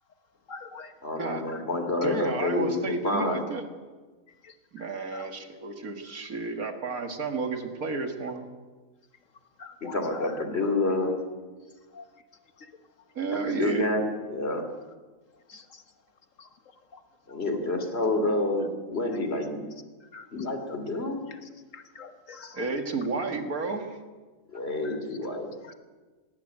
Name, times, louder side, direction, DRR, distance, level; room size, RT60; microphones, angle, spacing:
voice 1, 0.5-0.9 1.4-1.6 4.4-4.9 5.1-5.3 9.6-10.4 11.9-12.0 12.6-12.7 15.5-15.8 16.4-16.5 16.9-17.0 20.1-20.3 20.7-20.8 21.3-21.4 21.7-22.7 24.8-25.0 25.6-25.8, left 4 dB, 60° left, 8 dB, 1.5 m, -44 dB
voice 2, 1.0-3.4 9.8-11.2 13.3-14.6 17.3-19.7 20.3-21.2 24.5-25.5, left 2 dB, 45° left, 6 dB, 3.1 m, -28 dB
voice 3, 2.0-3.6 4.7-8.5 13.2-13.9 22.5-24.0, right 3 dB, 75° right, 5 dB, 2.4 m, -31 dB
19.5 x 16.5 x 9.0 m, 1.4 s
omnidirectional pair, 1.5 m